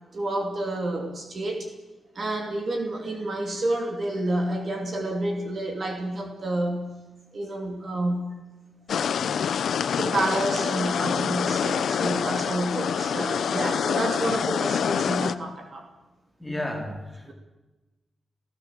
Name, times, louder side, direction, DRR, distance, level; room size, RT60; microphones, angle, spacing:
voice 1, 0.1-1.7 2.1-6.9 7.3-8.3 9.9-15.9 17.3-17.4, right 1 dB, 45° right, 3 dB, 2.7 m, -29 dB
sound 1, 8.9-15.3, left 7 dB, 75° left, 0.8 m, -26 dB
voice 2, 16.4-17.3, left 1 dB, 5° left, 0 dB, 4.2 m, -32 dB
29.0 x 15.5 x 7.6 m, 1.1 s
wide cardioid pair, 145°, 0 cm